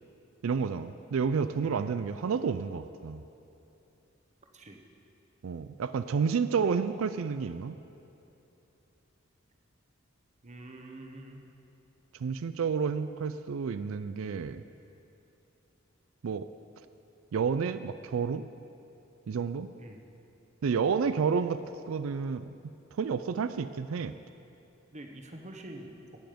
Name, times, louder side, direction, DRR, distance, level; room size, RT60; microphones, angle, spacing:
voice 1, 0.4-3.2 5.4-7.8 12.2-14.6 16.2-16.5 17.3-18.4 19.3-19.7 20.6-21.6 21.9-22.4 23.0-24.1, right 6 dB, 80° right, 12 dB, 0.4 m, -30 dB
voice 2, 10.4-11.4 19.8-20.0 24.9-25.9, right 1 dB, 35° right, 3 dB, 1.1 m, -46 dB
15.0 x 9.2 x 5.2 m, 2.9 s
head